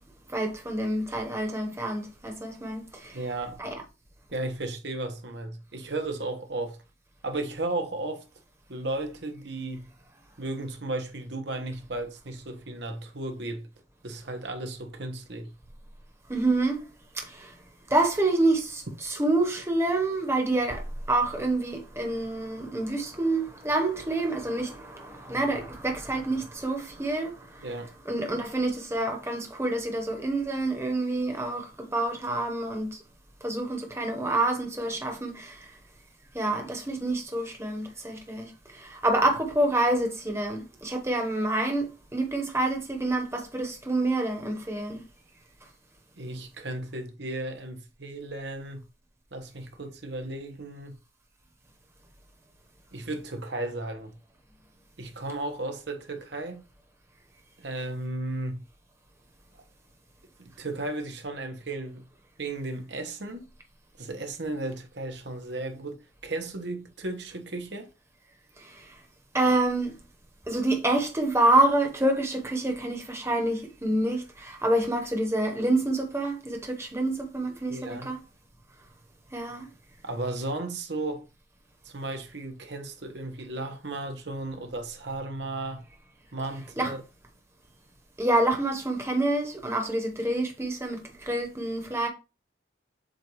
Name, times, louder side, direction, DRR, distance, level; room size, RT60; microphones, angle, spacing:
voice 1, 0.3-3.2 3.6-3.8 16.3-16.9 17.1-17.5 17.9-27.7 28.0-33.0 33.4-35.7 36.3-45.0 68.6-68.9 69.3-70.0 70.5-78.2 79.3-79.7 86.8-86.9 88.2-92.1, right 2 dB, 15° right, 1.1 m, -27 dB
voice 2, 3.1-3.6 4.3-6.8 7.2-8.2 8.7-9.9 10.4-13.7 14.0-15.5 27.6-27.9 46.2-48.9 49.3-50.9 52.9-54.1 55.0-56.6 57.6-58.6 60.4-62.1 62.4-63.5 64.0-67.9 77.7-78.1 80.0-81.2 81.8-85.8 86.3-87.0, right 2 dB, 60° right, 1.2 m, -34 dB
7.8 x 2.6 x 4.7 m
head